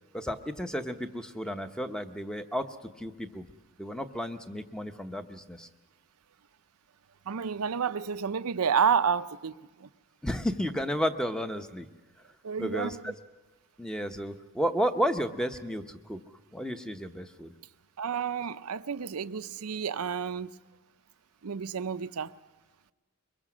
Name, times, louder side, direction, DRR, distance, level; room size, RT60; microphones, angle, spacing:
voice 1, 0.1-2.7 3.0-3.5 3.8-5.7 10.2-11.9 12.6-13.1 13.8-16.2 16.5-17.5, equal, 5° left, 0.8 m, -32 dB
voice 2, 7.3-9.5 9.8-9.9 12.4-13.1 18.0-20.6 21.4-22.3, right 6 dB, 75° right, 0.6 m, -30 dB
23.0 x 22.0 x 6.1 m
head